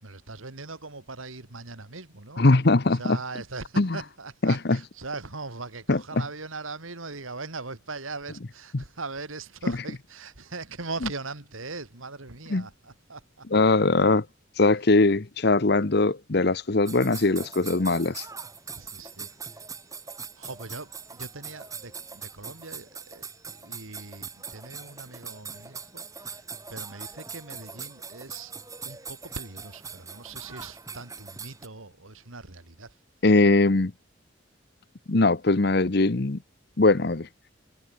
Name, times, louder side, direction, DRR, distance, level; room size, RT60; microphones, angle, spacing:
voice 1, 0.0-2.4 2.9-13.5 18.7-19.7 20.4-28.5 28.8-33.0, right 3 dB, 90° right, 2.9 m, -40 dB
voice 2, 2.4-3.2 3.8-4.0 4.4-4.8 5.9-6.0 12.5-12.6 13.5-14.2 14.6-18.3 33.2-33.9 35.1-36.4 36.8-37.3, left 2 dB, 55° left, 0.9 m, -21 dB
sound 1, 16.9-31.7, right 5 dB, 15° right, 5.2 m, -41 dB
head